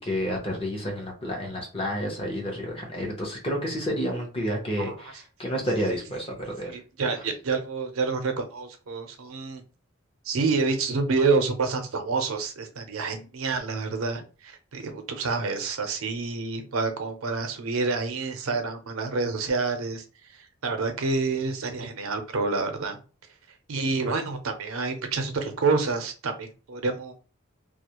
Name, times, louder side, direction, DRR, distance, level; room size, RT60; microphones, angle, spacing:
voice 1, 0.0-6.8, equal, 25° left, 0 dB, 0.7 m, -30 dB
voice 2, 6.6-9.6 10.2-20.0 20.3-23.0 23.7-27.1, right 4 dB, 90° right, 6 dB, 0.6 m, -28 dB
2.3 x 2.0 x 2.8 m, 0.35 s
head